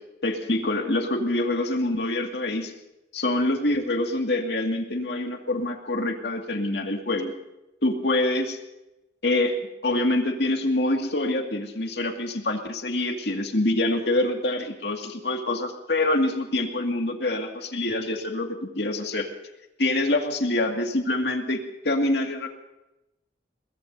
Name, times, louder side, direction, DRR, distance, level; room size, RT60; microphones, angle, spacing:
voice 1, 0.2-2.7 3.1-7.4 7.8-8.6 9.2-9.6 9.8-19.3 19.8-22.5, left 2 dB, 65° left, 3 dB, 2.2 m, -25 dB
23.0 x 21.0 x 2.7 m, 0.96 s
head